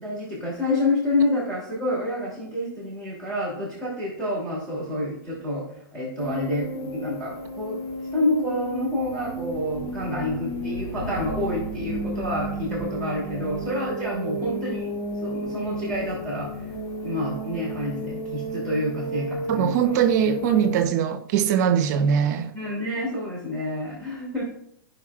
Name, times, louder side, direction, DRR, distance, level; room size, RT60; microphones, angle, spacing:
voice 1, 0.0-5.7 5.9-7.8 8.1-14.9 15.2-16.7 17.0-19.8 20.3-20.4 22.5-24.4, left 1 dB, 10° left, 2.9 m, -28 dB
sound 1, 6.2-20.8, right 1 dB, 30° left, 3.4 m, -33 dB
voice 2, 19.5-22.5, right 8 dB, 50° right, 0.9 m, -21 dB
14.0 x 5.2 x 2.4 m
hypercardioid pair, 145°, 12 cm